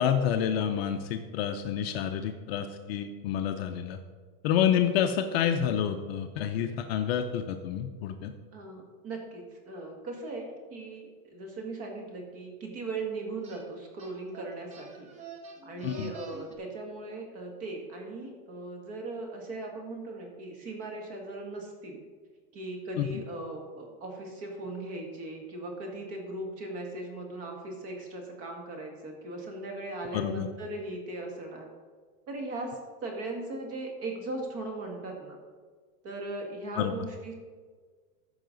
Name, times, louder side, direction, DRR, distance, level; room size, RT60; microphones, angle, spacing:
voice 1, 0.0-4.0 4.4-8.3 15.8-16.1 23.0-23.2 30.1-30.5 36.8-36.9, left 9 dB, 45° left, 6 dB, 0.6 m, -28 dB
voice 2, 8.5-15.1 15.6-22.0 22.5-31.7 32.3-35.4 36.0-37.4, right 2 dB, 30° right, 2 dB, 1.9 m, -38 dB
sound 1, 13.4-13.7 14.0-16.6, right 5 dB, 15° right, 0.5 m, -47 dB
14.5 x 5.6 x 3.9 m, 1.6 s
supercardioid pair, 155°, 46 cm